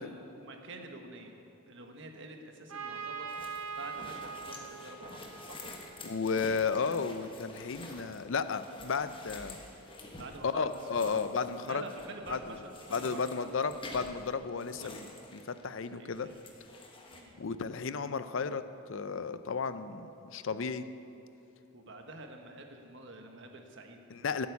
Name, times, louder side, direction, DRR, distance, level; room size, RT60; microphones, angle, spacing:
voice 1, 0.0-1.3 1.7-5.2 5.5-5.6 10.2-11.2 11.6-12.6 12.9-13.8 14.6-15.1 15.9-16.5 17.1-17.4 21.7-24.0, right 2 dB, 60° right, 4 dB, 1.4 m, -47 dB
Trumpet, 2.7-6.4, right 6 dB, 80° right, 1.1 m, -42 dB
sound 1, 3.3-15.9 16.1-17.2, left 2 dB, 25° left, 1.3 m, -49 dB
voice 2, 6.0-9.5 10.4-11.8 12.3-12.4 12.9-16.3 17.4-18.6 18.9-20.9 24.1-24.5, left 5 dB, 60° left, 12 dB, 0.5 m, -33 dB
13.0 x 8.5 x 8.3 m, 2.9 s
head